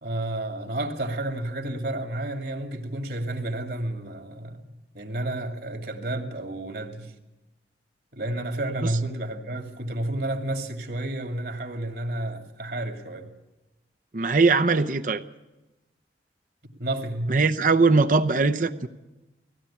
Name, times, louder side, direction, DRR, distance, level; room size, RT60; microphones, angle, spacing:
voice 1, 0.0-4.6 4.9-7.1 8.1-13.3 16.8-17.3, right 1 dB, 65° right, 2.3 m, -31 dB
voice 2, 14.1-15.2 17.3-18.9, right 3 dB, 50° right, 0.7 m, -20 dB
18.0 x 16.5 x 9.9 m
head